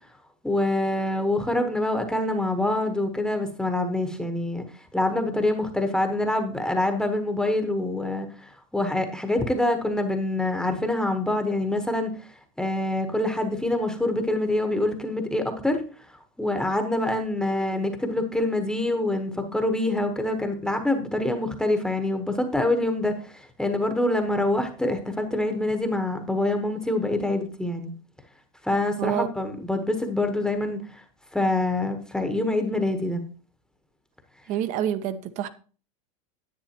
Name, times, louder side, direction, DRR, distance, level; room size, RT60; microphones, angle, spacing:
voice 1, 0.4-4.6 4.9-12.1 12.6-15.8 16.4-27.9 28.6-31.0 31.3-33.2, left 1 dB, 5° left, 1.0 m, -25 dB
voice 2, 34.5-35.5, right 10 dB, 45° right, 0.8 m, -27 dB
10.5 x 8.2 x 2.9 m
supercardioid pair, 120°, 17 cm